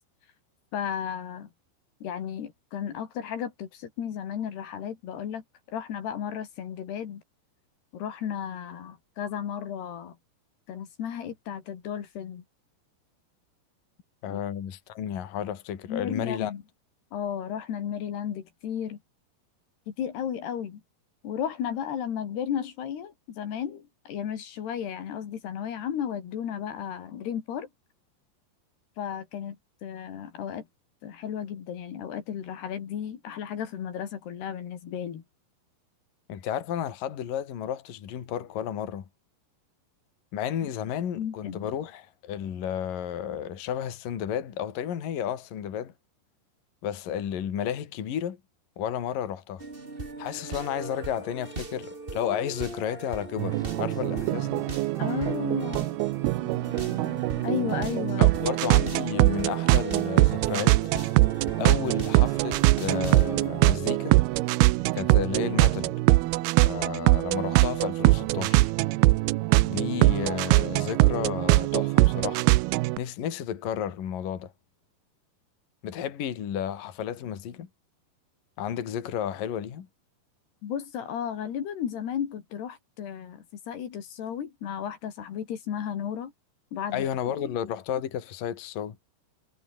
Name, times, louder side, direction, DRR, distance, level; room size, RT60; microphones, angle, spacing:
voice 1, 0.7-1.5 2.0-7.2 7.9-10.2 10.7-12.4 14.3-14.4 15.9-16.6 17.1-19.0 19.9-20.8 21.2-27.7 29.0-30.7 31.0-35.2 40.6-40.7 41.2-41.7 55.0-55.9 57.4-58.3 80.6-86.3 86.7-87.1 87.4-87.6, left 9 dB, 70° left, 4.6 m, -34 dB
voice 2, 14.2-16.5 36.3-39.1 40.3-45.9 46.8-48.4 48.8-49.6 50.2-54.6 58.2-60.8 61.6-64.2 64.9-65.9 66.6-68.7 69.6-72.5 73.0-74.5 75.8-77.7 78.6-79.9 86.9-89.0, left 9 dB, 55° left, 3.9 m, -32 dB
sound 1, 49.6-67.3 67.7-67.8, right 3 dB, 20° right, 1.6 m, -40 dB
sound 2, 53.4-73.0, right 20 dB, 80° right, 2.4 m, -23 dB
omnidirectional pair, 4.9 m